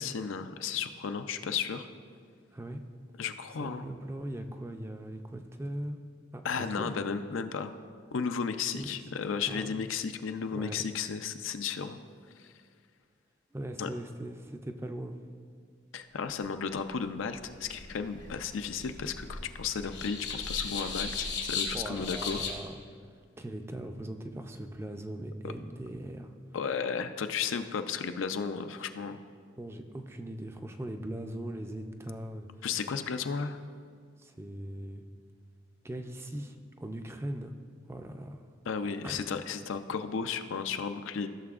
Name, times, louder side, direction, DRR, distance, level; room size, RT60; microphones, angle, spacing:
voice 1, 0.0-1.9 3.2-3.8 6.4-7.7 8.1-12.0 12.4-12.5 13.8-13.9 15.9-22.4 25.4-25.5 26.5-29.2 32.6-33.6 38.7-41.3, left 6 dB, 85° left, 9 dB, 0.4 m, -34 dB
voice 2, 2.5-2.8 3.6-6.0 6.3-7.2 8.7-9.1 9.5-9.7 10.5-10.9 13.5-15.2 21.7-22.7 23.4-26.3 29.6-32.5 34.2-35.0 35.8-37.5 37.9-38.4 39.0-39.2, right 1 dB, 15° right, 6 dB, 0.3 m, -40 dB
sound 1, 17.2-22.5, left 5 dB, 60° left, 1.1 m, -37 dB
14.5 x 6.8 x 2.4 m, 2.1 s
head